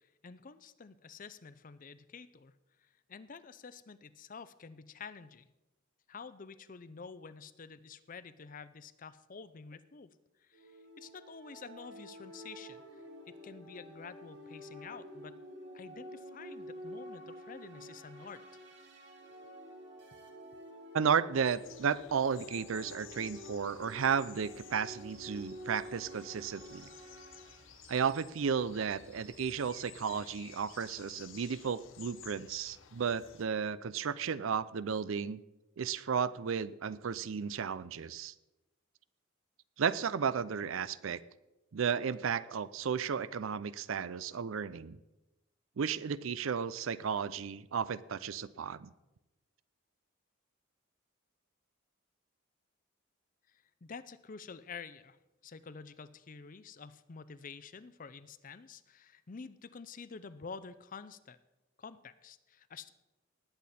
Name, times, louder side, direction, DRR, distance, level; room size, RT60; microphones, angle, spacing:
voice 1, 0.0-2.5 2.8-5.5 6.1-15.4 15.7-18.4 53.5-55.2 55.4-61.4 61.8-62.9, left 5 dB, 40° left, 14 dB, 0.5 m, -49 dB
sound 1, 10.5-27.8, equal, 60° right, 2.2 m, -50 dB
voice 2, 20.9-26.9 27.9-35.4 35.8-38.3 39.8-41.2 41.7-45.0 45.8-48.9, right 6 dB, 75° right, 17 dB, 0.5 m, -33 dB
sound 2, 21.3-33.4, left 9 dB, 70° left, 0.9 m, -55 dB
sound 3, 25.1-31.2, right 2 dB, 15° right, 1.5 m, -63 dB
19.0 x 8.3 x 4.3 m, 1.0 s
head